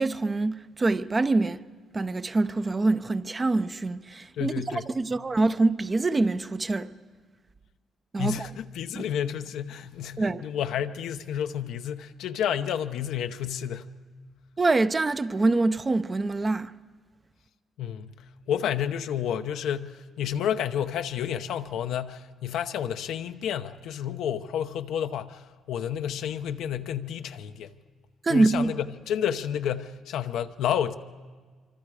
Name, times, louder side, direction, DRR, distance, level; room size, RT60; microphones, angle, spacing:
voice 1, 0.0-1.6 1.9-6.9 8.1-8.5 9.0-9.1 10.2-10.5 14.6-16.7 28.2-28.7, right 3 dB, 25° right, 0.7 m, -25 dB
voice 2, 4.4-4.8 8.2-13.9 17.8-18.1 18.5-27.7 28.3-30.9, left 9 dB, 80° left, 0.9 m, -30 dB
25.5 x 25.5 x 4.9 m
cardioid pair, 90°, 0 cm